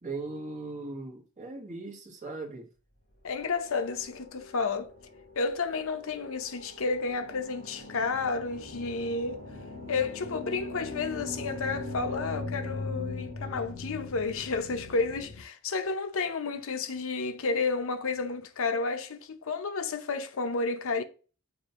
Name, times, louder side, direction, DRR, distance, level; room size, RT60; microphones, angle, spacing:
voice 1, 0.0-2.7, right 3 dB, 35° right, 1.5 m, -39 dB
voice 2, 3.2-4.9 5.4-9.4 9.9-21.0, left 4 dB, 65° left, 0.7 m, -31 dB
sound 1, 3.5-15.4, left 2 dB, 50° left, 4.0 m, -41 dB
7.1 x 3.0 x 5.5 m
head